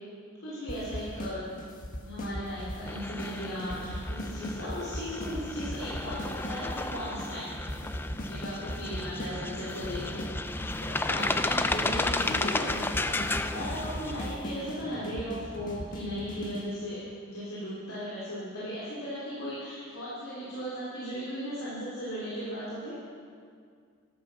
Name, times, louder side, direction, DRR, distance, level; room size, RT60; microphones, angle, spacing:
voice 1, 0.4-1.4 2.0-7.7 8.3-10.5 10.8-23.0, equal, 70° left, -10 dB, 3.6 m, -37 dB
sound 1, 0.7-1.3 1.6-2.9 3.2-3.3 3.6-6.8 7.2-7.3 7.6-9.3 9.6-10.9 11.2-11.3 11.6-16.7, equal, 40° left, 1.6 m, -38 dB
sound 2, 2.9-14.3, left 2 dB, 10° left, 0.3 m, -33 dB
13.5 x 11.5 x 5.7 m, 2.1 s
head